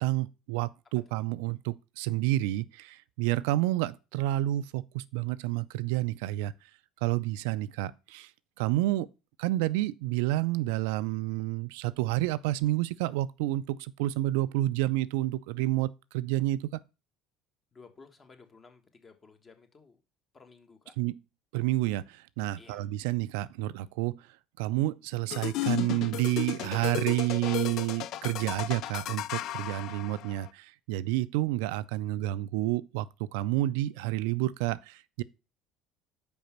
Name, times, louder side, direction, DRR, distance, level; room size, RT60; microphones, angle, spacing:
voice 1, 0.0-6.5 7.0-8.3 8.6-9.1 9.4-16.8 21.0-21.1 21.5-24.2 24.6-35.2, right 16 dB, 85° right, 0.4 m, -29 dB
voice 2, 17.7-20.0 20.3-21.0 22.6-22.9, left 4 dB, 30° left, 1.5 m, -55 dB
sound 1, 25.3-30.5, left 14 dB, 65° left, 0.3 m, -34 dB
5.3 x 4.9 x 5.8 m
supercardioid pair, 90°, 0 cm